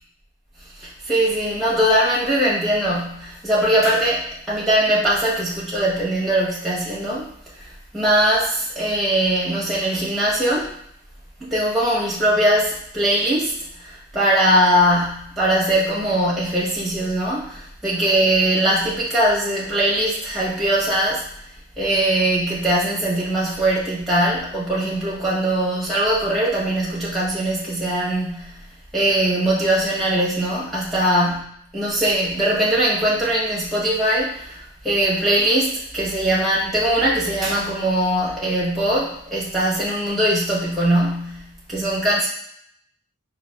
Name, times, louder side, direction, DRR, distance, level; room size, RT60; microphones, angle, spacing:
voice 1, 0.8-7.3 7.6-7.7 7.9-10.7 11.4-13.5 13.8-21.3 21.8-28.5 28.9-31.4 31.7-42.3, right 1 dB, ahead, -7 dB, 0.9 m, -21 dB
4.1 x 2.4 x 2.3 m, 0.68 s
head